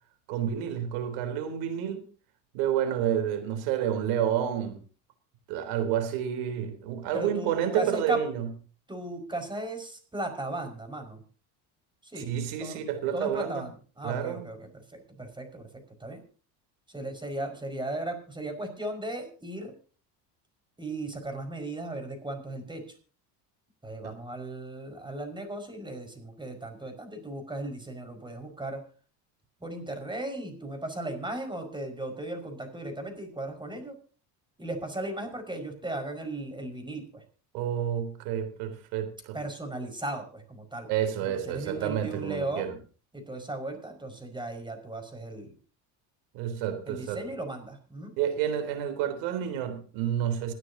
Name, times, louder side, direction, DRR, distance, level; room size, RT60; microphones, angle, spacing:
voice 1, 0.3-2.0 2.5-4.8 5.5-8.5 12.2-13.6 14.0-14.4 24.0-24.1 37.5-39.4 40.9-42.7 46.3-47.2 48.2-50.5, right 9 dB, 90° right, 3.7 m, -29 dB
voice 2, 7.1-8.2 8.9-11.2 12.0-12.3 12.6-12.8 13.1-15.7 16.0-16.2 16.9-19.7 20.8-22.8 23.8-28.8 29.6-33.9 34.6-37.2 39.3-40.9 41.2-42.7 43.1-45.5 46.9-48.1, right 1 dB, 10° right, 5.4 m, -36 dB
27.0 x 9.8 x 2.8 m
cardioid pair, 110°, 43 cm